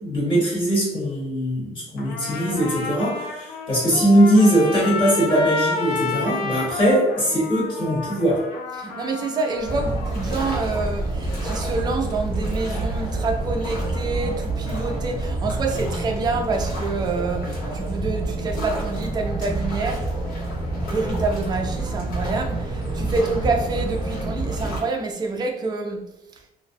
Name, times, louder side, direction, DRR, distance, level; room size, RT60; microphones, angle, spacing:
voice 1, 0.0-8.4, equal, 30° left, -7 dB, 1.3 m, -20 dB
Trumpet, 2.0-10.0, left 3 dB, 85° left, 0.5 m, -30 dB
voice 2, 8.8-20.1 20.8-26.0, right 3 dB, 25° right, 3 dB, 0.4 m, -27 dB
sound 1, 9.6-24.8, right 2 dB, 60° left, 0.9 m, -27 dB
2.5 x 2.1 x 2.5 m, 0.89 s
cardioid pair, 150°, 16 cm